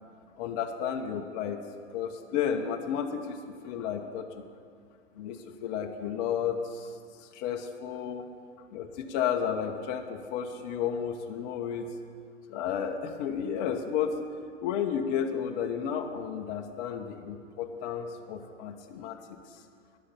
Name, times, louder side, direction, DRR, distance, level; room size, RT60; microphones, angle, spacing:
voice 1, 0.4-1.6 1.9-4.4 5.2-6.9 7.2-8.3 8.7-11.9 12.5-14.2 14.6-19.2 19.5-19.6, left 8 dB, 35° left, 4 dB, 1.0 m, -32 dB
13.0 x 10.5 x 5.7 m, 2.2 s
figure-of-eight pair, 115°, 37 cm